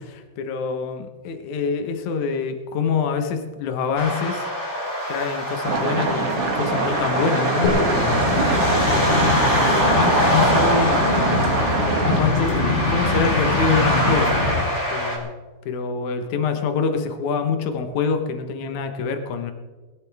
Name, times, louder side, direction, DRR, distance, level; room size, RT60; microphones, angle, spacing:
voice 1, 0.1-4.5 5.1-8.3 8.9-9.4 9.6-11.1 12.1-14.4 14.9-15.3 15.6-19.5, left 5 dB, 90° left, 6 dB, 1.6 m, -26 dB
sound 1, 4.0-15.2, equal, 15° left, 3.6 m, -23 dB
sound 2, 5.6-12.2, right 4 dB, 70° right, 1.4 m, -25 dB
sound 3, 7.6-14.6, left 3 dB, 70° left, 6.1 m, -24 dB
20.5 x 15.5 x 3.6 m, 1.3 s
omnidirectional pair, 5.4 m